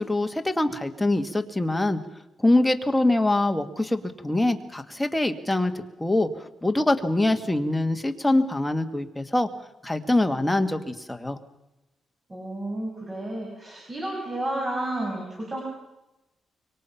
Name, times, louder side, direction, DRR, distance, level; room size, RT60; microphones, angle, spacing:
voice 1, 0.0-2.0 2.4-5.7 6.0-9.5 9.8-11.4, left 2 dB, 5° left, 6 dB, 1.7 m, -24 dB
voice 2, 12.3-15.6, right 1 dB, 25° right, -1 dB, 6.4 m, -31 dB
26.0 x 23.5 x 5.8 m, 0.97 s
cardioid pair, 115°, 0 cm